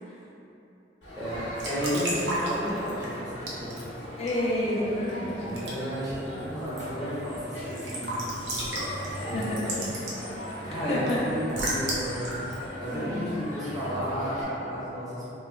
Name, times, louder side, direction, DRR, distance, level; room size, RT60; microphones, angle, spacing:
Crowd, 1.0-14.4, equal, 80° left, 1.0 m, -38 dB
voice 1, 1.1-3.8 5.4-8.6 8.9-9.8 10.6-12.4 12.8-15.3, equal, 20° right, -10 dB, 0.8 m, -33 dB
Raindrop / Drip / Trickle dribble, 1.3-13.8, right 1 dB, 85° right, 0.7 m, -36 dB
voice 2, 4.2-5.6 9.3-9.9 10.9-11.2 12.9-13.4, left 1 dB, 35° left, -6 dB, 0.3 m, -30 dB
3.0 x 2.3 x 3.0 m, 3.0 s
head